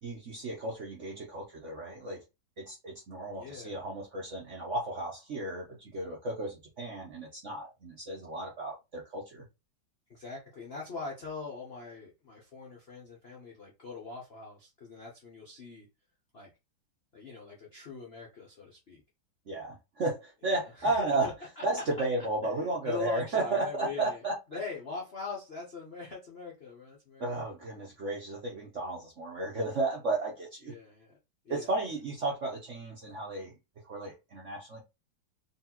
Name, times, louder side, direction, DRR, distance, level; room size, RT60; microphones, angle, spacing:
voice 1, 0.0-2.2 2.6-9.4 19.5-21.3 21.6-24.3 27.2-30.7 31.5-33.5 33.8-34.8, right 2 dB, 55° right, 0.8 m, -33 dB
voice 2, 3.3-3.8 10.1-15.9 16.3-16.5 17.1-19.0 20.8-22.1 22.4-24.2 24.5-27.3 30.6-31.2 31.4-31.7, left 4 dB, 65° left, 0.6 m, -42 dB
4.1 x 3.1 x 2.9 m
omnidirectional pair, 2.3 m